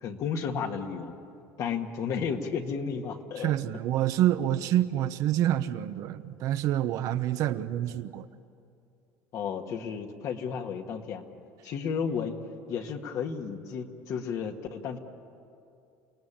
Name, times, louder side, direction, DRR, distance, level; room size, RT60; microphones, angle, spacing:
voice 1, 0.0-1.1 1.6-3.5 9.3-11.2 11.6-12.4 12.7-15.0, left 6 dB, 55° left, 4 dB, 1.9 m, -33 dB
voice 2, 3.4-8.3, right 12 dB, 60° right, 10 dB, 0.9 m, -27 dB
29.0 x 18.0 x 8.9 m, 2.6 s
supercardioid pair, 115°, 7 cm